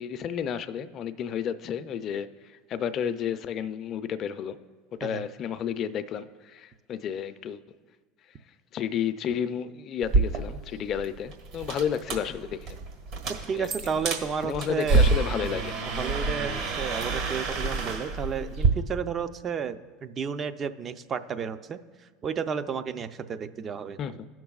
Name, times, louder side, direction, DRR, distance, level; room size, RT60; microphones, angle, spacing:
voice 1, 0.0-2.3 2.7-4.6 5.0-7.6 8.7-12.8 13.5-13.7 14.1-15.8 24.0-24.2, left 8 dB, 45° left, 12 dB, 0.5 m, -31 dB
sound 1, 10.0-18.7, right 3 dB, 60° right, 1.5 m, -28 dB
voice 2, 13.5-15.0 16.0-21.8 22.2-24.0, right 6 dB, 35° right, 11 dB, 0.5 m, -32 dB
18.0 x 6.0 x 2.4 m, 1.4 s
hypercardioid pair, 90°, 0 cm